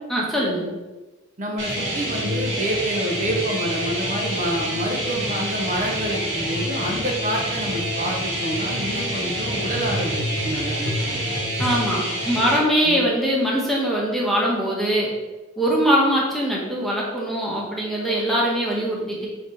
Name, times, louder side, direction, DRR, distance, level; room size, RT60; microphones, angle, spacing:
voice 1, 0.1-0.7 11.6-15.1 15.6-19.3, equal, ahead, -4 dB, 1.0 m, -22 dB
voice 2, 1.4-11.3 12.8-13.0, right 1 dB, 40° right, 0 dB, 0.6 m, -28 dB
sound 1, 1.6-12.6, equal, 70° right, 1.4 m, -27 dB
sound 2, 8.0-12.1 12.9-13.0, equal, 60° left, 1.1 m, -32 dB
3.7 x 3.3 x 4.1 m, 1.2 s
head